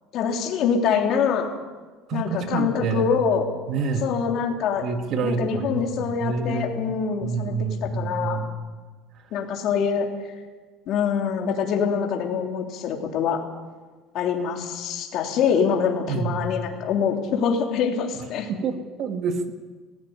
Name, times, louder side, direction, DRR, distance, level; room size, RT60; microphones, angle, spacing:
voice 1, 0.1-1.5 2.1-3.5 4.0-4.9 5.2-8.5 9.3-10.1 10.9-13.4 14.1-18.5, left 6 dB, 50° left, 2 dB, 3.2 m, -24 dB
voice 2, 2.1-3.2 3.7-4.1 4.8-6.9 7.2-8.5 16.1-16.6 18.5-19.5, right 5 dB, 45° right, 7 dB, 1.8 m, -28 dB
19.0 x 15.5 x 9.5 m, 1.4 s
cardioid pair, 155°, 0 cm